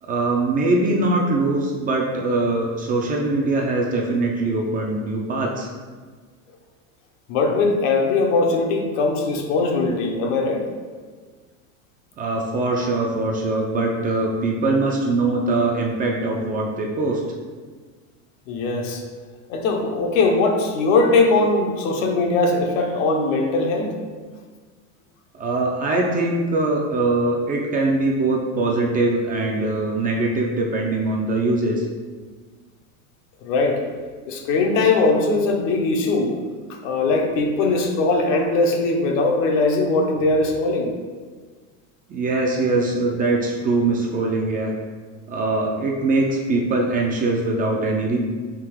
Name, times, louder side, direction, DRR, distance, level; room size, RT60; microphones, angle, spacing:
voice 1, 0.0-5.7 12.2-17.2 25.3-31.9 42.1-44.8 45.3-48.2, right 2 dB, 20° right, 0 dB, 0.4 m, -22 dB
voice 2, 7.3-10.7 18.5-19.0 19.5-23.9 33.4-33.8 34.3-36.3 36.8-40.9, left 3 dB, 70° left, 2 dB, 0.9 m, -20 dB
3.7 x 2.8 x 4.6 m, 1.5 s
supercardioid pair, 125°, 40 cm